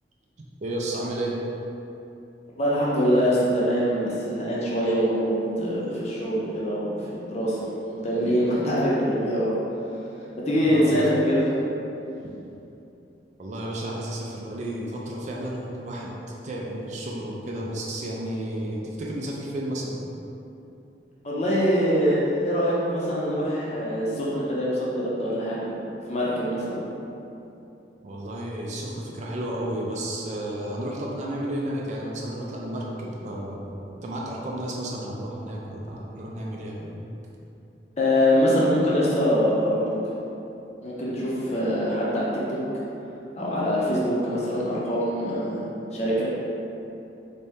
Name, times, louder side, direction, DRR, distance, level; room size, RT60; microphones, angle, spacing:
voice 1, 0.6-1.4 10.6-11.0 12.2-12.3 13.4-16.1 16.4-20.1 28.0-37.1, right 1 dB, 40° right, -3 dB, 0.4 m, -32 dB
voice 2, 2.5-5.3 5.6-7.7 8.0-9.5 10.3-11.5 21.2-25.7 26.1-26.8 38.0-39.9 40.8-42.6 43.4-45.6 45.9-46.2, equal, 40° left, -6 dB, 0.7 m, -24 dB
4.1 x 2.7 x 3.5 m, 2.9 s
head